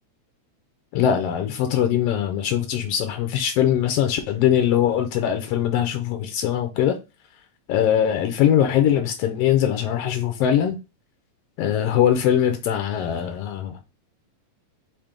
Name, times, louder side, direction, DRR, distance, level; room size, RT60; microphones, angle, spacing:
voice 1, 0.9-7.0 7.7-10.8 11.6-13.8, left 10 dB, 85° left, 1.4 m, -21 dB
5.0 x 2.5 x 3.7 m
omnidirectional pair, 3.4 m